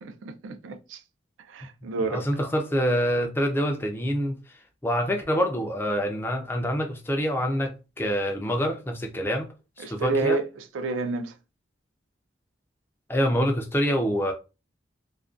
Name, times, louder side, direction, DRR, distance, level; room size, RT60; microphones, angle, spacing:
voice 1, 0.0-1.0 1.5-2.2 9.8-11.4, right 3 dB, 90° right, 0.4 m, -29 dB
voice 2, 2.1-4.4 4.8-9.5 9.8-10.4 13.1-14.3, equal, 10° left, 0.3 m, -26 dB
2.4 x 2.2 x 2.3 m
head